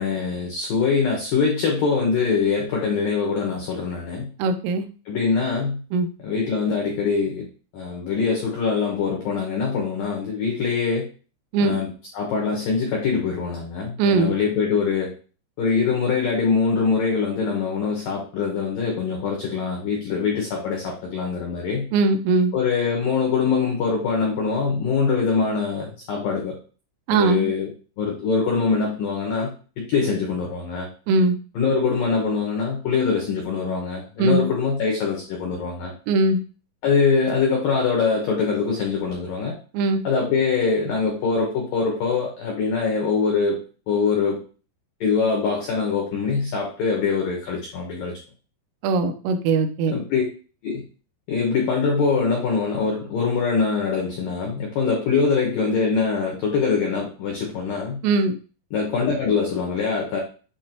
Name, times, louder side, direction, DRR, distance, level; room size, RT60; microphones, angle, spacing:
voice 1, 0.0-4.3 5.1-5.8 6.2-7.5 7.7-11.1 11.6-15.1 15.6-21.9 22.5-26.6 27.1-27.7 28.0-29.5 29.8-30.9 31.5-35.9 36.8-39.5 40.0-44.4 45.0-48.2 49.9-50.2 50.6-50.8 51.3-58.0 58.7-60.2, left 5 dB, 85° left, -1 dB, 1.9 m, -23 dB
voice 2, 4.4-4.8 5.9-6.1 11.5-11.8 14.0-14.3 21.9-22.5 27.1-27.5 31.1-31.4 34.2-34.5 36.1-36.4 39.7-40.0 48.8-49.9 58.0-58.3, right 3 dB, 85° right, 6 dB, 3.3 m, -20 dB
8.6 x 2.9 x 4.4 m, 0.37 s
omnidirectional pair, 5.9 m